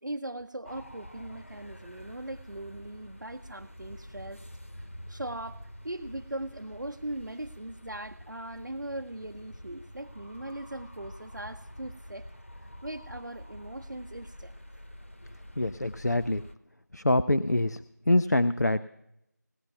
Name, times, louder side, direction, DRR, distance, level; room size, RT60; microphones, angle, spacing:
voice 1, 0.0-4.4 5.1-12.3 12.8-14.5, right 1 dB, 90° right, 5 dB, 0.6 m, -39 dB
sound 1, 0.6-16.5, equal, 45° left, 0.9 m, -47 dB
voice 2, 15.6-16.4 16.9-17.8 18.1-18.8, left 1 dB, 65° left, 12 dB, 0.5 m, -25 dB
17.5 x 10.5 x 6.9 m, 0.82 s
figure-of-eight pair, 175°, 10 cm